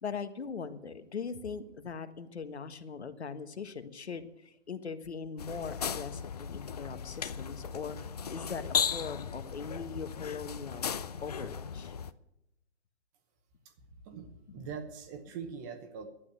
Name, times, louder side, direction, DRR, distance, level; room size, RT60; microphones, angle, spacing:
voice 1, 0.0-8.0 8.3-10.9 11.2-11.9, left 5 dB, 65° left, 11 dB, 1.5 m, -40 dB
sound 1, 5.4-12.1, left 7 dB, 35° left, 0.5 m, -36 dB
voice 2, 14.0-16.1, right 6 dB, 15° right, 7 dB, 1.0 m, -42 dB
11.5 x 9.1 x 9.2 m, 0.86 s
hypercardioid pair, 150°, 35 cm